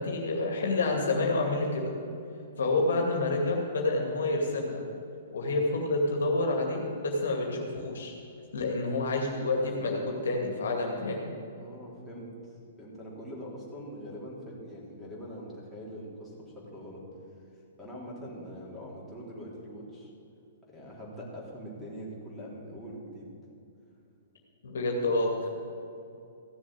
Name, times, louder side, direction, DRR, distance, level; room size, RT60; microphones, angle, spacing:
voice 1, 0.0-1.9 2.6-4.8 5.3-8.1 8.5-11.3 24.6-25.5, left 2 dB, 65° left, 1 dB, 2.3 m, -28 dB
voice 2, 11.6-17.0 17.8-20.1 20.7-23.3, equal, 5° left, -7 dB, 3.8 m, -43 dB
15.0 x 7.3 x 8.0 m, 2.7 s
figure-of-eight pair, 115°, 0 cm